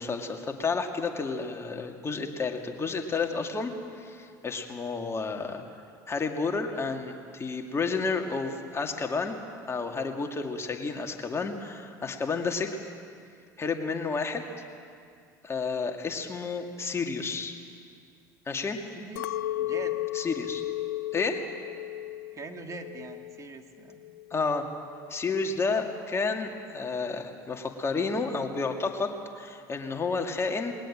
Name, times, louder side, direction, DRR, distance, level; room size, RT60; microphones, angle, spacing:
voice 1, 0.0-5.6 6.1-9.4 9.7-12.7 13.6-14.4 15.4-17.5 18.5-18.8 20.1-20.6 21.1-21.4 24.3-24.7 25.1-30.7, left 4 dB, 25° left, 4 dB, 2.3 m, -31 dB
voice 2, 19.0-19.3 19.6-19.9 22.3-24.0, right 4 dB, 30° right, 4 dB, 2.1 m, -42 dB
Chink clink, 19.2-23.6 23.9-24.5, left 15 dB, 75° left, 0.6 m, -34 dB
21.0 x 19.0 x 7.5 m, 2.3 s
hypercardioid pair, 75°, 10 cm